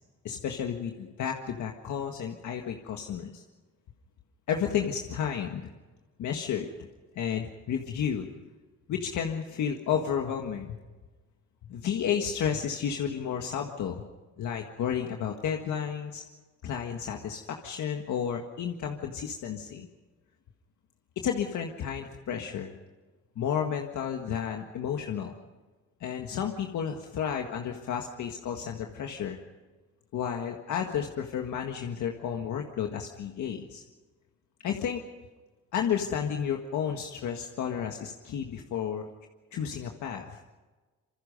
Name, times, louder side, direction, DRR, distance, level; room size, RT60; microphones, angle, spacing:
voice 1, 0.2-3.4 4.5-5.7 6.2-6.7 7.2-8.3 8.9-10.8 11.6-14.1 14.4-16.2 16.6-19.9 21.2-22.7 23.4-25.3 26.0-29.4 30.1-33.8 34.6-35.0 35.7-39.1 39.5-40.4, left 8 dB, 75° left, 3 dB, 1.8 m, -32 dB
26.5 x 23.5 x 5.4 m, 1.3 s
cardioid pair, 90°, 30 cm